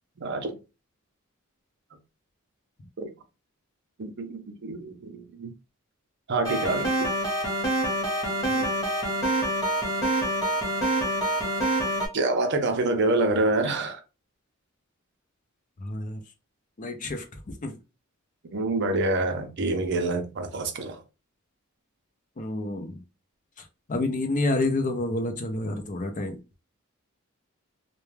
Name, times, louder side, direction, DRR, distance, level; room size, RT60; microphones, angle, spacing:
voice 1, 0.2-0.6 3.0-3.1 4.0-5.5 6.3-7.1 12.1-14.0 18.5-21.0, right 2 dB, 55° right, 0.5 m, -27 dB
sound 1, 6.4-12.1, right 1 dB, 15° left, 0.9 m, -26 dB
voice 2, 15.8-16.2 16.8-17.3 17.6-17.7 22.4-23.0 23.9-26.4, left 2 dB, 40° left, 0.5 m, -28 dB
2.2 x 2.2 x 3.1 m
head